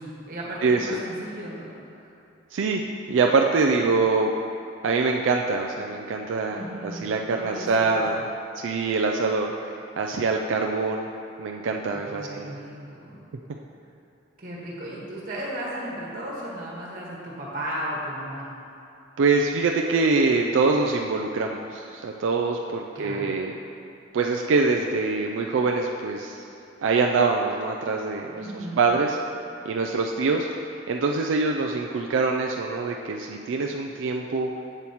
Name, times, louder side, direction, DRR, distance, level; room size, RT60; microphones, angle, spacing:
voice 1, 0.0-2.1 6.5-7.1 7.4-7.9 11.9-13.2 14.4-18.5 23.0-23.2 28.3-28.9, right 1 dB, 50° right, -5 dB, 1.6 m, -35 dB
voice 2, 2.5-2.8 3.1-4.3 4.8-8.3 8.6-9.5 10.0-11.1 11.4-12.5 19.2-23.6 24.1-26.4 26.8-29.2 29.7-30.5 30.9-34.5, right 4 dB, 90° right, 1 dB, 0.4 m, -24 dB
7.9 x 7.0 x 3.0 m, 2.7 s
head